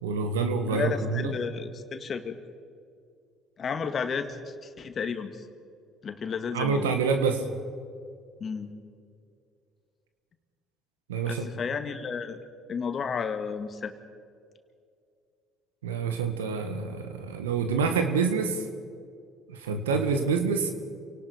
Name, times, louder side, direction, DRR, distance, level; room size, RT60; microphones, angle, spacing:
voice 1, 0.0-1.3 6.5-7.4 11.1-11.5 15.8-18.6 19.5-20.7, right 5 dB, 85° right, 6 dB, 1.8 m, -27 dB
voice 2, 0.7-2.4 3.6-5.4 6.0-6.9 8.4-8.7 11.3-12.4 12.7-13.9, left 6 dB, 45° left, 8 dB, 2.1 m, -32 dB
28.0 x 18.5 x 5.3 m, 2.3 s
hypercardioid pair, 55°, 0 cm